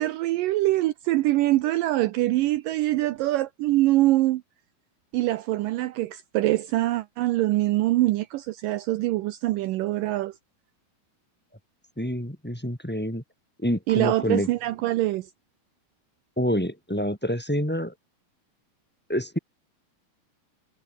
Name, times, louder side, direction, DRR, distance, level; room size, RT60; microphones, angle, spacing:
voice 1, 0.0-4.4 5.1-10.4 13.9-15.3, right 16 dB, 75° right, 2.3 m, -24 dB
voice 2, 12.0-13.2 13.6-14.5 16.4-17.9 19.1-19.4, equal, 5° left, 2.7 m, -27 dB
omnidirectional pair, 4.2 m